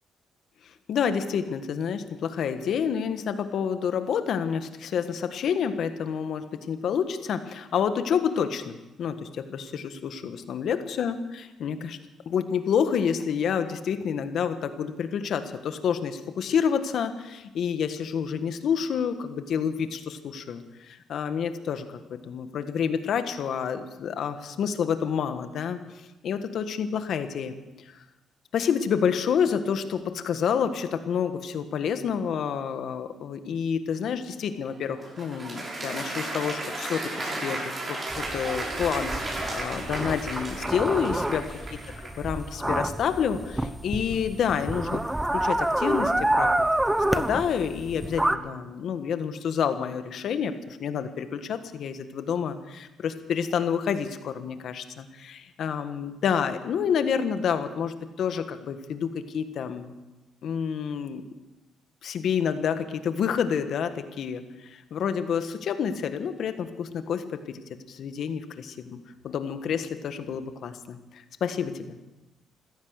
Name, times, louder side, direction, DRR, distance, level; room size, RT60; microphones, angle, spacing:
voice 1, 0.9-11.2 11.6-12.0 12.2-25.8 26.2-27.6 28.5-37.6 37.9-41.5 42.2-45.0 45.3-46.5 47.0-59.9 60.4-61.2 62.0-67.6 67.9-69.0 69.2-71.9, left 7 dB, 65° left, 9 dB, 1.5 m, -28 dB
Applause, 34.6-42.3, right 2 dB, 35° right, 7.0 m, -34 dB
sound 1, 38.1-48.4, right 1 dB, 10° right, 0.9 m, -28 dB
16.0 x 14.0 x 6.5 m, 1.0 s
cardioid pair, 90°, 0 cm